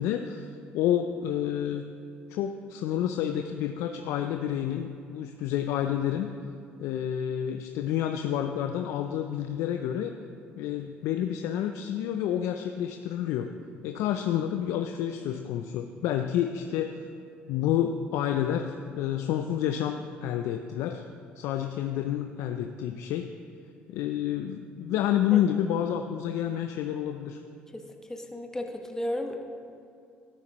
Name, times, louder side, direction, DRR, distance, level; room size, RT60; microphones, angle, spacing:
voice 1, 0.0-1.9 2.3-6.3 6.8-10.1 10.6-13.5 13.8-17.0 17.5-21.0 21.4-23.3 23.9-27.4, left 10 dB, 75° left, 6 dB, 0.4 m, -29 dB
voice 2, 28.1-29.4, left 1 dB, 10° left, 3 dB, 1.3 m, -34 dB
13.0 x 12.5 x 3.0 m, 2.4 s
supercardioid pair, 65°, 5 cm